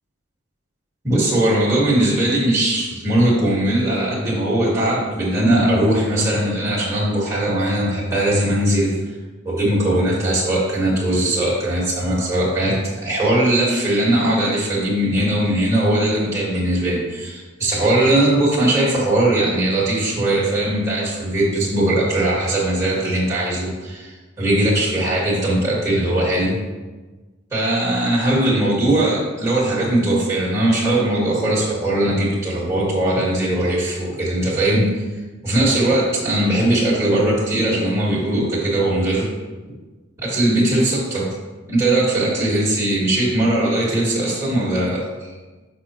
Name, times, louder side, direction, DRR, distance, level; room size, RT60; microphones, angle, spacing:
voice 1, 1.0-8.9 9.4-12.8 13.0-24.1 24.4-26.6 27.5-34.9 35.4-39.3 40.2-41.3 41.7-45.0, right 1 dB, 15° right, -8 dB, 1.8 m, -19 dB
6.1 x 5.7 x 3.1 m, 1.2 s
head